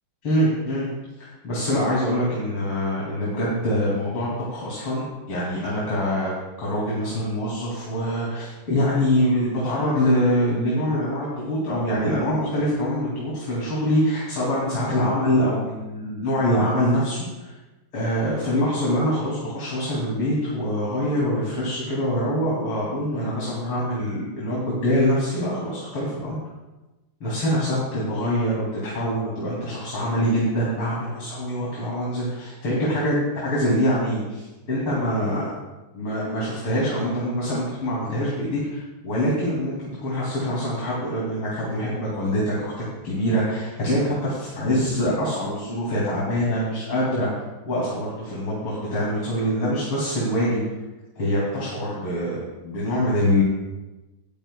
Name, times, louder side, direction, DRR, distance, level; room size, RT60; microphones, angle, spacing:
voice 1, 0.2-0.9 1.2-6.3 6.6-17.5 17.9-26.4 27.2-35.5 35.9-42.7 43.0-47.3 47.7-50.6 51.2-52.4 52.6-53.4, equal, 80° left, -6 dB, 3.4 m, -24 dB
18.0 x 10.5 x 2.2 m, 1.1 s
omnidirectional pair, 2.3 m